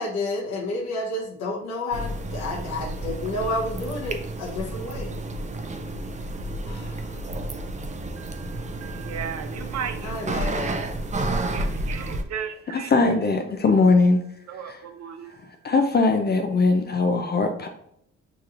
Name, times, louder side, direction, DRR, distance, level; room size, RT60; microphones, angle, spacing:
voice 1, 0.0-5.1 6.6-7.2 10.0-10.8, left 2 dB, 65° left, -2 dB, 0.9 m, -30 dB
sound 1, 1.9-12.2, right 2 dB, 25° right, 0.5 m, -31 dB
voice 2, 8.2-8.5 8.8-10.2 11.5-12.9 14.5-15.3, right 7 dB, 60° right, 7 dB, 0.7 m, -35 dB
voice 3, 12.7-14.2 14.7-14.8 15.6-17.7, left 3 dB, 35° left, 5 dB, 0.5 m, -20 dB
6.2 x 2.9 x 2.5 m, 0.71 s
cardioid pair, 90°, 30 cm